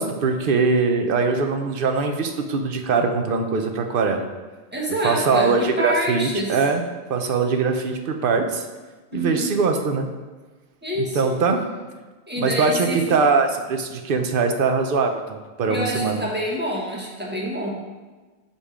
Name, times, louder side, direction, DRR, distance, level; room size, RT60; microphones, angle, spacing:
voice 1, 0.0-4.3 5.0-6.8 7.1-8.6 9.1-10.1 11.1-11.6 12.4-16.2, right 4 dB, 60° right, 5 dB, 0.8 m, -22 dB
voice 2, 4.7-6.5 9.1-9.6 10.8-11.4 12.3-13.1 15.7-17.7, equal, 10° right, -4 dB, 1.2 m, -27 dB
5.3 x 5.1 x 4.9 m, 1.3 s
omnidirectional pair, 1.1 m